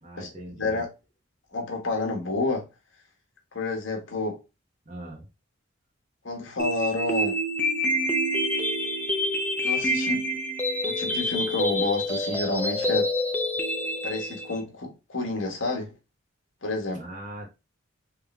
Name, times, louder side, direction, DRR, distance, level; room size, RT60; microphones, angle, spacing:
voice 1, 0.0-0.8 4.8-5.3 16.9-17.5, right 1 dB, 40° right, 1.4 m, -40 dB
voice 2, 1.5-2.7 3.5-4.4 6.2-7.4 9.6-10.3 10.8-13.1 14.0-15.9 16.6-17.0, left 3 dB, 70° left, 1.2 m, -29 dB
sound 1, 6.6-14.6, equal, 10° left, 0.6 m, -27 dB
3.6 x 3.3 x 3.1 m
head